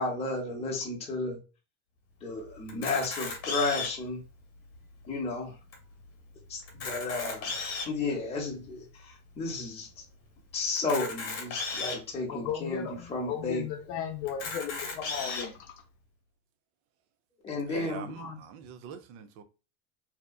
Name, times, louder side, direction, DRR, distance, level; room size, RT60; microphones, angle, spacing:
voice 1, 0.0-1.4 2.2-4.2 5.1-5.5 6.5-7.5 7.8-10.0 10.5-13.7 17.4-18.4, left 3 dB, 15° left, 0.8 m, -33 dB
Camera, 2.7-4.1 4.7-4.8 5.0-5.2 5.7-5.8 6.6-8.0 8.6-8.7 10.8-12.0 12.7-12.8 13.1-13.2 14.3-15.5, left 4 dB, 40° left, 0.9 m, -35 dB
voice 2, 12.3-15.7, left 8 dB, 70° left, 0.6 m, -36 dB
voice 3, 17.7-19.4, right 8 dB, 40° right, 0.4 m, -44 dB
2.7 x 2.3 x 2.2 m
supercardioid pair, 145°, 37 cm